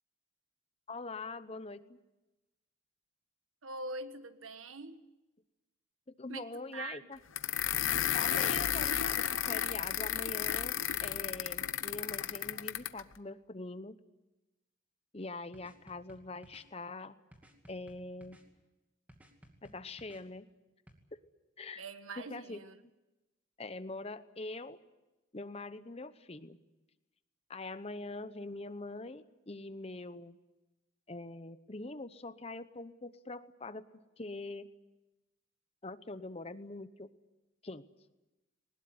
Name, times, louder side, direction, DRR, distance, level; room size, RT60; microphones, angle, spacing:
voice 1, 0.9-2.0 6.2-7.2 8.1-10.7 11.0-14.0 15.1-17.2 17.7-18.4 19.6-20.5 21.1-21.2 21.6-21.8 22.2-22.6 23.6-24.8 25.3-26.6 27.5-30.4 31.1-34.7 35.8-37.1 37.6-37.9, left 2 dB, 30° left, 12 dB, 0.9 m, -43 dB
voice 2, 3.6-5.0 6.3-7.1 21.8-22.8, right 2 dB, 90° right, 10 dB, 1.5 m, -43 dB
sound 1, 7.4-13.0, left 10 dB, 80° left, 0.9 m, -33 dB
sound 2, 15.5-16.7 17.3-18.5 19.1-20.2 20.9-21.0, equal, 10° right, 2.4 m, -58 dB
20.5 x 20.0 x 9.6 m, 1.0 s
head